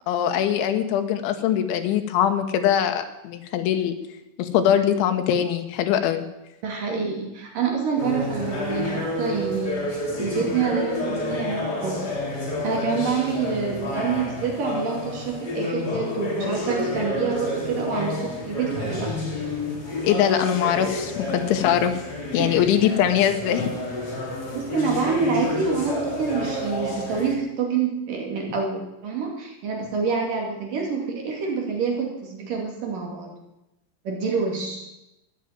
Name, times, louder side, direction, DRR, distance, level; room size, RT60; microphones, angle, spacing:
voice 1, 0.1-3.9 4.4-6.3 20.0-21.9 22.3-23.7, left 10 dB, 80° left, 6 dB, 3.6 m, -22 dB
voice 2, 6.6-12.1 12.6-19.1 22.4-22.6 24.5-33.3 34.1-34.9, right 5 dB, 50° right, 0 dB, 3.7 m, -27 dB
sound 1, 8.0-27.4, left 1 dB, 25° left, 2.7 m, -29 dB
13.5 x 10.5 x 8.8 m, 0.93 s
omnidirectional pair, 5.4 m